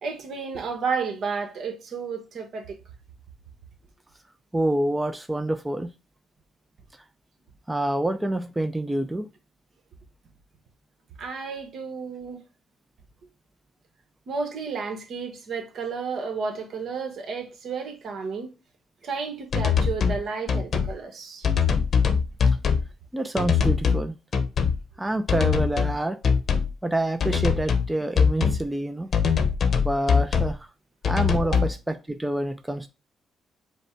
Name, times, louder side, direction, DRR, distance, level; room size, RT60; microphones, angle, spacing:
voice 1, 0.0-2.8 11.2-12.4 14.3-18.5 19.0-21.5 31.4-31.7, right 5 dB, 65° right, 1.2 m, -32 dB
voice 2, 4.5-5.9 7.7-9.3 23.1-24.2 25.0-26.2 26.8-29.1 29.8-30.7 31.1-32.9, right 1 dB, 10° right, 0.4 m, -27 dB
sound 1, 19.5-20.2 20.5-20.9 21.4-22.9 23.4-24.1 24.3-24.8 25.3-26.0 26.2-26.7 27.2-27.9 28.2-28.6 29.1-30.5 31.0-31.7, left 6 dB, 50° left, 0.8 m, -22 dB
5.2 x 2.2 x 4.5 m
cardioid pair, 90°, 0 cm